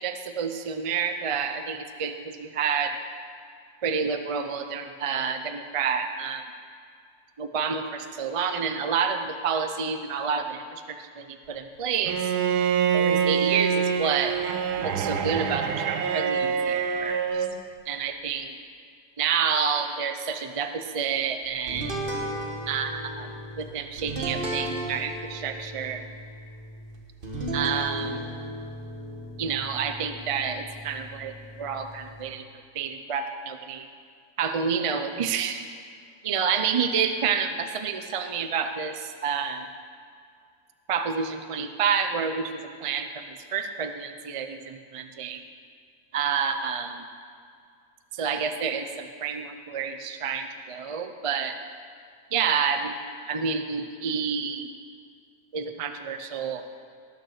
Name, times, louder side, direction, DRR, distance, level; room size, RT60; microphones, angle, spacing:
voice 1, 0.0-3.0 3.8-6.4 7.4-12.3 12.9-14.4 14.8-17.5 17.9-18.6 19.2-21.9 22.7-23.3 23.6-26.0 27.5-28.2 29.4-32.5 32.7-33.9 34.4-35.6 36.2-39.7 40.9-45.4 46.1-47.0 48.1-51.6 52.3-53.0 53.3-54.7 55.5-56.6, right 6 dB, 60° right, 7 dB, 0.3 m, -29 dB
Bowed string instrument, 12.1-17.6, right 7 dB, 85° right, 1.3 m, -25 dB
sound 1, 21.7-32.3, right 1 dB, 35° right, 1.5 m, -35 dB
18.0 x 6.7 x 6.5 m, 2.2 s
omnidirectional pair, 1.6 m